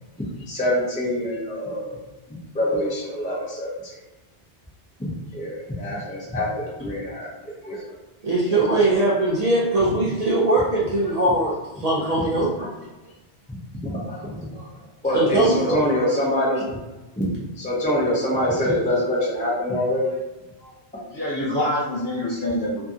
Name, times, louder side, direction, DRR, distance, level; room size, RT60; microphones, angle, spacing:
voice 1, 0.5-2.0 2.5-4.0 5.0-7.3 7.6-8.0 8.7-8.8 9.1-9.2 11.1-11.5 12.0-12.3 12.6-12.7 13.5-14.7 15.0-16.8 17.2-20.1 20.6-20.7, left 1 dB, 10° left, -6 dB, 0.4 m, -25 dB
voice 2, 8.2-12.5 15.1-15.8, right 2 dB, 50° right, -6 dB, 0.5 m, -21 dB
voice 3, 21.1-22.8, left 1 dB, 55° left, -7 dB, 1.1 m, -25 dB
2.6 x 2.6 x 2.4 m, 1.1 s
omnidirectional pair, 1.0 m